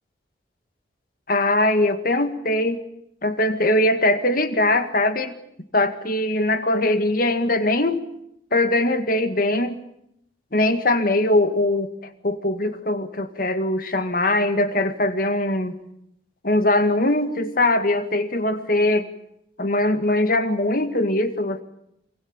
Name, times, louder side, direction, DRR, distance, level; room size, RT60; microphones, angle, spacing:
voice 1, 1.3-2.8 3.2-5.3 5.7-8.0 8.5-9.8 10.5-11.9 12.2-15.8 16.4-19.1 19.6-21.6, left 1 dB, 50° left, 9 dB, 2.0 m, -21 dB
25.5 x 24.0 x 7.3 m, 0.76 s
head